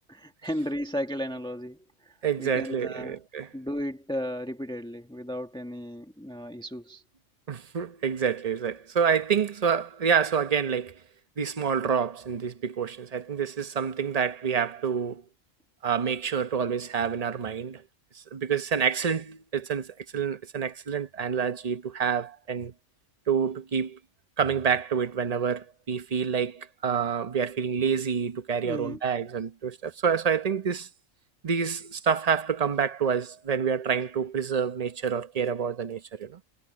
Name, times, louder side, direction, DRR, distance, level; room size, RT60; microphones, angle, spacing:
voice 1, 0.1-3.2 3.5-7.0 28.6-29.0, equal, 5° left, 1.6 m, -35 dB
voice 2, 2.2-3.5 7.5-11.0 11.4-15.2 15.8-17.8 18.1-22.7 23.3-24.0 24.4-30.9 31.4-36.4, right 7 dB, 35° right, 0.9 m, -28 dB
omnidirectional pair, 1.3 m